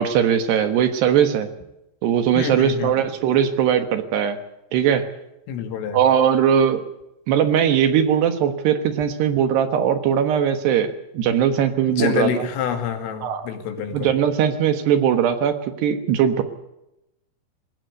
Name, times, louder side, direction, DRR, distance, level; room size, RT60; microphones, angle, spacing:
voice 1, 0.0-1.5 2.0-4.4 4.7-5.1 5.9-6.8 7.3-12.5 13.2-13.5 13.9-15.5 15.8-16.4, right 9 dB, 65° right, 9 dB, 3.1 m, -19 dB
voice 2, 2.3-2.9 5.5-6.0 11.9-14.1, left 7 dB, 90° left, 7 dB, 4.9 m, -26 dB
20.5 x 17.5 x 8.2 m, 0.89 s
omnidirectional pair, 5.7 m